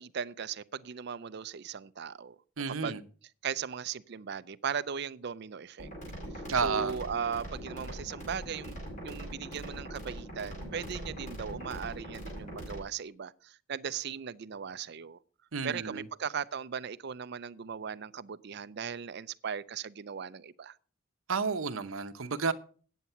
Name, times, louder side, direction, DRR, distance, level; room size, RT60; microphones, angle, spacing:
voice 1, 0.0-3.0 3.4-5.9 6.6-8.8 9.0-15.2 15.6-20.8, right 7 dB, 50° right, 0.4 m, -38 dB
voice 2, 2.6-3.0 6.5-7.0 15.5-16.0 21.3-22.5, right 5 dB, 75° right, 0.8 m, -31 dB
sound 1, 5.8-12.8, right 1 dB, 35° left, 5.0 m, -42 dB
9.3 x 8.2 x 5.7 m
head